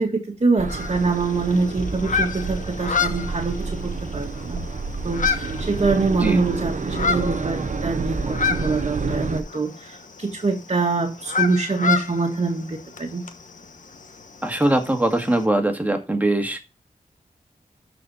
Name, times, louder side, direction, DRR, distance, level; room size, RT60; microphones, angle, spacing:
voice 1, 0.0-4.6 5.0-13.2, right 3 dB, 45° right, 1.6 m, -24 dB
sound 1, 0.6-9.4, right 4 dB, 60° right, 0.9 m, -29 dB
sound 2, 0.7-15.4, left 5 dB, 60° left, 1.1 m, -30 dB
voice 2, 14.4-16.6, right 1 dB, 10° right, 1.9 m, -21 dB
12.5 x 4.4 x 4.2 m
wide cardioid pair, 75°, 15 cm